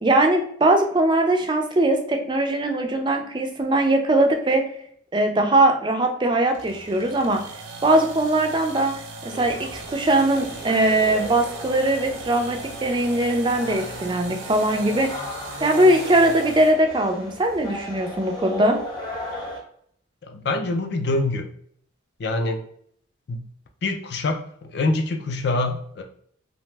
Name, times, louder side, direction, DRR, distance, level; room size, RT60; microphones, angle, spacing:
voice 1, 0.0-4.6 5.1-7.4 7.8-8.9 9.2-15.1 15.6-18.8, right 1 dB, 25° right, 4 dB, 0.4 m, -20 dB
sound 1, 6.5-16.8, right 3 dB, 70° right, 0.5 m, -38 dB
sound 2, 9.3-19.6, left 1 dB, 20° left, 0.9 m, -36 dB
voice 2, 20.2-21.5 22.2-22.6 23.3-23.4 23.8-26.0, left 2 dB, 55° left, 4 dB, 0.4 m, -25 dB
2.8 x 2.1 x 3.2 m, 0.63 s
head